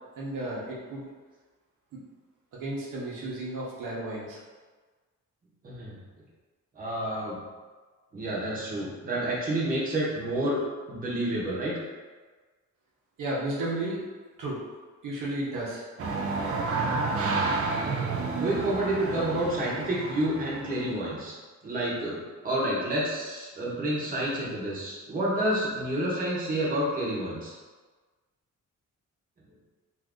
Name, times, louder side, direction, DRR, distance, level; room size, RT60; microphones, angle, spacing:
voice 1, 0.2-1.0 2.5-4.4 13.2-14.0 14.4-14.6 15.0-15.8, right 1 dB, 85° right, -5 dB, 0.9 m, -33 dB
voice 2, 6.8-7.4 8.1-10.6 10.9-11.7 17.2-17.5 18.4-21.3 21.6-27.5, right 1 dB, 25° right, -6 dB, 0.8 m, -29 dB
sound 1, 16.0-21.1, right 3 dB, 50° right, 0.4 m, -30 dB
2.5 x 2.5 x 3.5 m, 1.4 s
wide cardioid pair, 155°, 31 cm